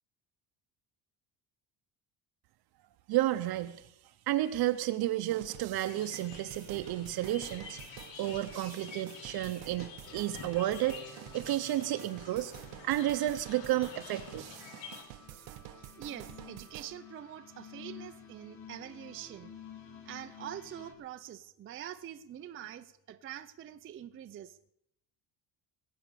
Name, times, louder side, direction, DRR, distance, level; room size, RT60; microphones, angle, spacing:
voice 1, 3.1-3.8 4.3-7.8 8.2-11.0 11.3-12.5 12.8-14.5, right 14 dB, 55° right, 9 dB, 0.8 m, -31 dB
sound 1, 5.2-16.9, right 15 dB, 85° right, 0.9 m, -49 dB
sound 2, 5.9-15.0, left 5 dB, 80° left, 2.9 m, -49 dB
sound 3, 10.0-20.9, left 6 dB, 40° left, 3.0 m, -53 dB
voice 2, 16.0-19.5 20.1-24.7, right 11 dB, 30° right, 8 dB, 0.5 m, -45 dB
21.5 x 8.7 x 6.9 m, 0.78 s
cardioid pair, 160°, 44 cm